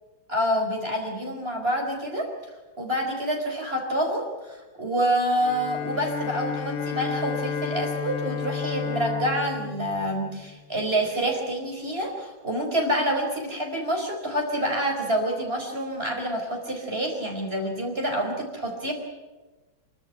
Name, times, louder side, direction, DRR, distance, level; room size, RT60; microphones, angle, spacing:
voice 1, 0.3-2.3 2.8-18.9, equal, 30° right, 2 dB, 4.7 m, -27 dB
Bowed string instrument, 5.4-10.9, left 7 dB, 55° left, 1.2 m, -32 dB
26.5 x 13.0 x 10.0 m, 1.2 s
omnidirectional pair, 2.2 m